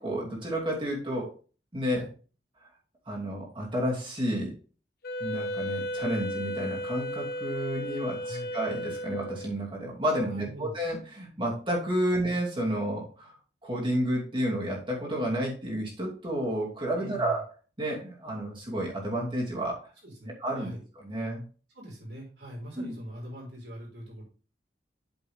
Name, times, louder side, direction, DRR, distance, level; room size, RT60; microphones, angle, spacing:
voice 1, 0.0-1.3 1.7-2.0 2.6-2.7 3.1-4.5 5.2-13.3 13.6-17.4 17.8-19.9 20.2-21.4 22.8-22.9, equal, 30° right, -3 dB, 2.8 m, -31 dB
Wind instrument woodwind instrument, 5.0-9.6, equal, 60° left, 1.5 m, -34 dB
voice 2, 8.2-8.5 10.3-10.7 17.0-17.4 20.0-20.8 21.7-24.2, equal, 70° right, -3 dB, 5.1 m, -42 dB
8.3 x 6.8 x 3.7 m, 0.37 s
head